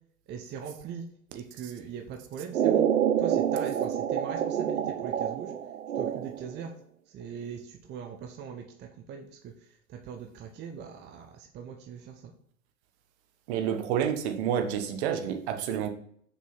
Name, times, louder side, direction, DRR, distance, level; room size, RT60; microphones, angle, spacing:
voice 1, 0.3-1.0 1.3-2.8 3.2-5.5 5.9-6.7 7.1-12.3, right 7 dB, 25° right, 4 dB, 0.8 m, -41 dB
sound 1, 2.5-6.6, right 9 dB, 75° right, 0.7 m, -27 dB
voice 2, 13.5-15.9, right 8 dB, 50° right, 5 dB, 1.3 m, -29 dB
6.6 x 5.2 x 4.1 m, 0.65 s
figure-of-eight pair, 95°, 42 cm